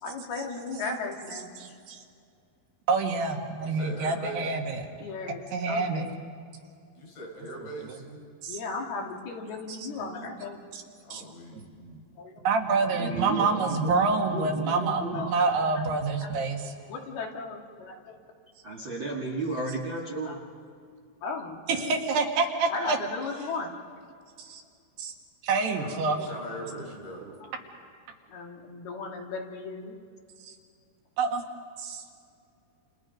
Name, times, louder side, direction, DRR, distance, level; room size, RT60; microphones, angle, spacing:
voice 1, 0.0-1.5 5.0-6.2 8.5-10.6 12.2-12.4 15.1-15.3 15.8-16.3 16.9-18.2 20.2-20.4 21.2-22.0 22.7-23.7 27.4-27.5 28.3-30.0, left 4 dB, 65° left, 1 dB, 4.1 m, -36 dB
voice 2, 1.6-2.0 2.9-4.9 5.5-6.1 7.6-8.0 8.4-8.6 9.7-10.0 10.7-10.8 11.1-11.2 11.5-12.0 12.5-16.6 21.8-23.0 24.4-24.6 25.0-25.1 25.4-26.3 27.2-27.3 30.5-30.6 31.2-31.4 31.8-32.0, right 4 dB, 70° right, 2 dB, 3.9 m, -27 dB
voice 3, 3.6-4.4 7.0-8.0 11.0-11.6 25.8-27.3, right 1 dB, 90° left, -1 dB, 8.0 m, -41 dB
voice 4, 12.9-15.3 18.6-20.4, right 2 dB, 40° right, 0 dB, 1.9 m, -34 dB
29.5 x 29.0 x 5.3 m, 2.3 s
omnidirectional pair, 5.1 m